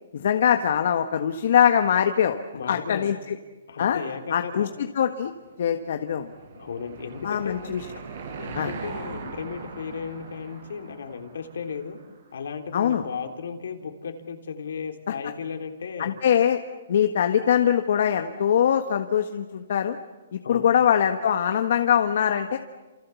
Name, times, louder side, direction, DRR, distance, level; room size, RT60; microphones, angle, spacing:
voice 1, 0.1-3.4 3.8-4.0 4.3-4.7 4.9-5.3 5.6-6.3 7.2-7.8 8.5-8.7 12.7-13.0 16.0-16.6 16.9-20.0 20.3-22.6, left 9 dB, 60° left, 7 dB, 1.5 m, -22 dB
voice 2, 2.5-3.1 3.7-4.7 6.5-7.7 8.4-12.0 12.3-16.1 20.4-20.7, left 6 dB, 75° left, 5 dB, 3.6 m, -35 dB
Car passing by / Engine, 5.4-12.2, right 5 dB, 55° right, 6.2 m, -41 dB
29.0 x 28.0 x 7.2 m, 1.3 s
hypercardioid pair, 160°, 0 cm